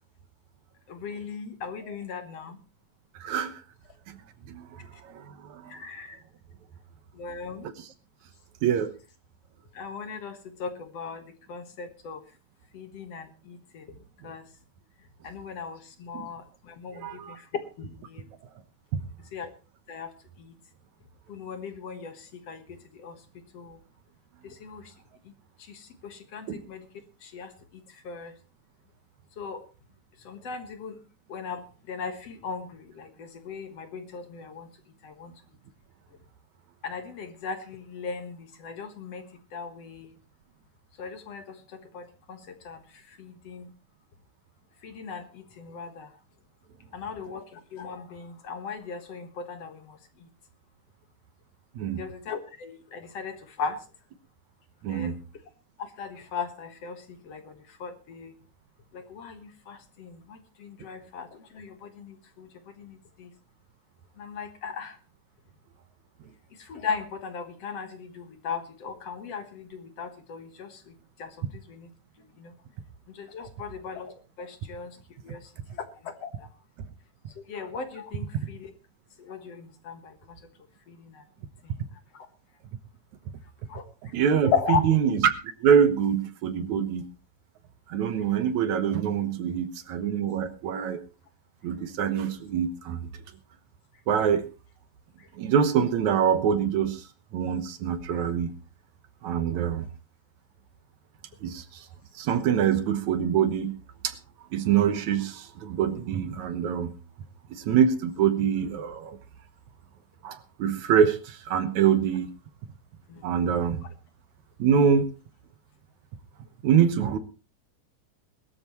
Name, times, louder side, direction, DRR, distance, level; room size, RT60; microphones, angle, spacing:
voice 1, 0.9-2.6 5.7-6.2 7.2-7.6 9.8-11.2 11.5-12.2 12.7-13.8 14.2-14.4 15.2-17.4 17.8-18.2 19.3-19.5 19.9-20.1 20.4-20.5 21.3-23.2 23.5-23.8 24.4-24.8 25.7-26.8 27.2-27.5 28.1-28.3 29.4-29.6 30.3-31.0 31.3-31.6 31.9-32.7 33.0-34.7 35.0-35.3 36.8-39.2 39.5-40.1 41.0-42.4 42.7-42.8 43.2-43.7 44.8-46.1 46.9-50.0 52.0-53.8 54.9-55.2 55.8-57.5 57.8-58.3 58.9-62.5 62.8-63.3 64.2-65.0 66.7-70.9 71.2-71.9 72.4-72.5 73.2-75.0 75.2-75.4 76.0-76.3 77.5-78.7 79.2-80.1 80.9-81.2 83.7-83.8 84.5-84.8 113.1-113.2, left 5 dB, 55° left, 8 dB, 2.4 m, -37 dB
voice 2, 3.2-3.6 4.1-4.2 4.5-5.8 7.6-7.9 8.6-8.9 14.2-14.3 16.1-16.3 16.9-17.4 26.5-26.6 51.8-52.0 54.8-55.2 84.1-85.3 85.6-87.0 87.9-91.0 91.6-93.1 94.1-94.5 95.4-97.0 97.3-98.5 99.2-99.9 101.4-101.9 102.2-103.8 104.0-104.2 104.5-106.9 107.5-109.2 110.2-112.3 113.2-113.8 114.6-115.1 116.6-117.2, right 8 dB, 70° right, 11 dB, 2.4 m, -25 dB
21.0 x 13.0 x 3.1 m, 0.32 s
omnidirectional pair, 3.6 m